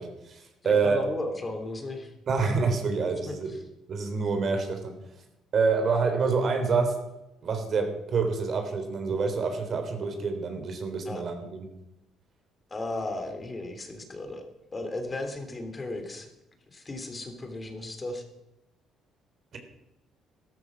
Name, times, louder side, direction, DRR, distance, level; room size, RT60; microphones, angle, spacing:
voice 1, 0.0-1.0 2.3-3.5 3.9-5.0 5.5-7.0 7.4-11.7, right 4 dB, 50° right, 6 dB, 3.4 m, -27 dB
voice 2, 0.8-2.1 3.2-3.3 11.1-11.2 12.7-14.4 14.7-16.3 16.7-18.2, left 2 dB, 25° left, 5 dB, 3.1 m, -35 dB
14.0 x 13.0 x 6.2 m, 0.92 s
cardioid pair, 100°, 0 cm